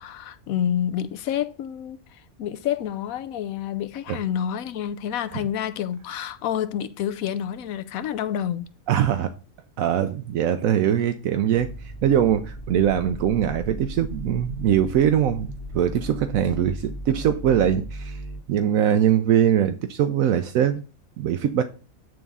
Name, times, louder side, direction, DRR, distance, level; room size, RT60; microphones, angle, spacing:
voice 1, 0.0-8.7, left 10 dB, 80° left, 1.1 m, -28 dB
voice 2, 8.9-9.3 9.8-18.2 18.5-20.8 21.2-21.6, right 9 dB, 75° right, 1.0 m, -22 dB
sound 1, 11.5-18.4, equal, 40° left, 1.6 m, -36 dB
9.2 x 3.6 x 5.3 m
omnidirectional pair, 1.5 m